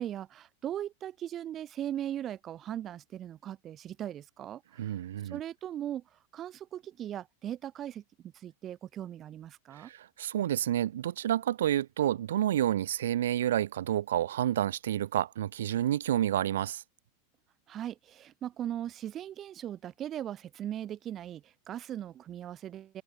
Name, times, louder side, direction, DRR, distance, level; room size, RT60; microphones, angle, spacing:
voice 1, 0.0-5.0 5.3-6.0 6.3-9.9 17.7-23.0, right 11 dB, 35° right, 2.1 m, -39 dB
voice 2, 4.8-5.4 9.7-16.8, right 11 dB, 75° right, 0.4 m, -29 dB
open air
hypercardioid pair, 100°, 0 cm